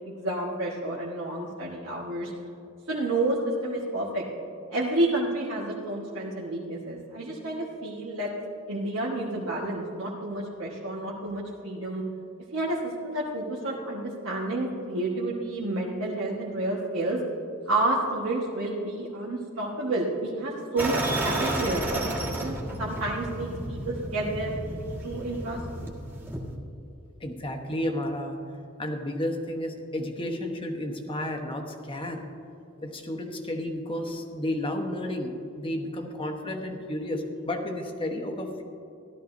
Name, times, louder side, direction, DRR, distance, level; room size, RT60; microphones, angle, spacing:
voice 1, 0.1-2.3 2.9-3.4 3.6-4.2 4.7-8.3 8.7-12.0 12.5-17.2 17.7-22.5 22.8-24.5 25.0-25.6, right 2 dB, 65° right, -5 dB, 1.4 m, -30 dB
sound 1, 20.8-26.5, right 1 dB, 10° right, 1.5 m, -32 dB
voice 2, 27.2-28.4 28.8-32.2 32.8-38.6, left 1 dB, 25° left, 3 dB, 1.1 m, -32 dB
15.5 x 12.5 x 2.7 m, 2.8 s
head